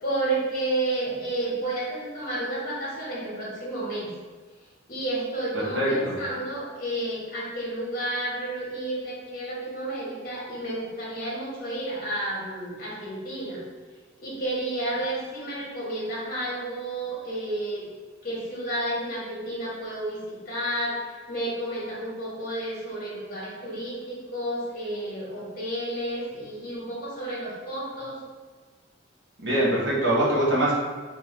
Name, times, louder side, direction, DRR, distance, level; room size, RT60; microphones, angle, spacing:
voice 1, 0.0-4.1 4.9-13.6 14.2-17.8 18.2-28.2, right 1 dB, 50° left, -5 dB, 1.4 m, -31 dB
voice 2, 5.7-6.2 29.4-30.7, right 1 dB, 70° right, -7 dB, 1.4 m, -23 dB
3.5 x 3.1 x 3.2 m, 1.4 s
head